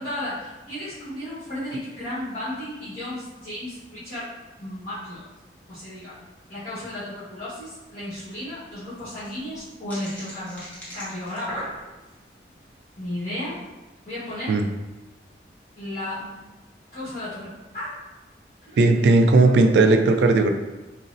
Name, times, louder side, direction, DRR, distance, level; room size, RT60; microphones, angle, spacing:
voice 1, 0.0-4.3 4.6-5.3 5.7-6.1 6.5-10.7 10.9-11.7 13.0-13.6 14.0-14.5 15.8-16.3 16.9-18.0 18.7-19.5, left 1 dB, 40° left, -15 dB, 1.2 m, -34 dB
sound 1, 8.9-12.2 12.7-13.0, equal, 10° left, 0.7 m, -38 dB
voice 2, 18.8-20.5, right 3 dB, 80° right, 6 dB, 0.3 m, -17 dB
3.8 x 2.0 x 2.5 m, 1.1 s
head